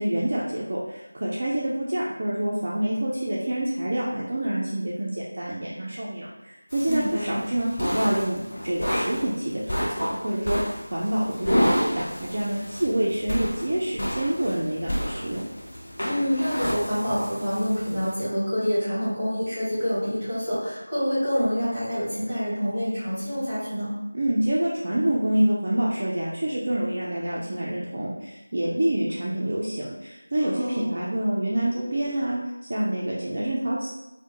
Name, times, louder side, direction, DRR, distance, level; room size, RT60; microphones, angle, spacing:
voice 1, 0.0-15.4 24.1-33.9, right 1 dB, 35° right, -6 dB, 0.3 m, -27 dB
sound 1, 6.7-18.1, equal, 45° left, 0.6 m, -30 dB
voice 2, 6.9-7.4 16.0-24.0 30.5-30.9, equal, ahead, -13 dB, 1.1 m, -27 dB
2.3 x 2.1 x 2.8 m, 0.95 s
figure-of-eight pair, 170°, 0 cm